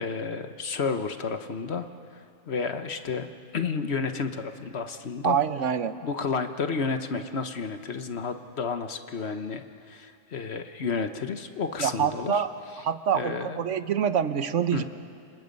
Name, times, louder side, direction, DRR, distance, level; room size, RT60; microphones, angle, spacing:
voice 1, 0.0-1.9 2.5-5.4 6.0-12.3 13.1-13.6 14.7-14.8, left 5 dB, 60° left, 8 dB, 1.3 m, -31 dB
voice 2, 5.2-5.9 11.8-12.5 12.8-14.8, right 8 dB, 75° right, 11 dB, 1.2 m, -26 dB
29.0 x 27.0 x 5.4 m, 2.4 s
omnidirectional pair, 1.3 m